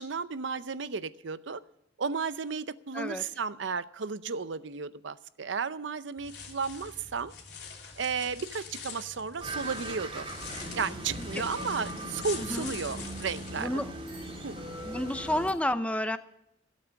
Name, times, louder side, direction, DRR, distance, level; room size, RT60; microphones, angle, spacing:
voice 1, 0.0-1.6 2.0-7.3 8.0-10.3 10.7-13.8 14.4-14.6, right 5 dB, 80° right, 15 dB, 0.6 m, -34 dB
sound 1, 6.2-13.7, left 6 dB, 60° left, 2.9 m, -44 dB
sound 2, 9.4-15.5, right 1 dB, 30° right, 3.0 m, -39 dB
voice 2, 12.4-12.7 13.6-13.9 14.8-16.2, left 1 dB, 5° left, 10 dB, 0.7 m, -31 dB
16.0 x 8.4 x 7.1 m, 0.79 s
head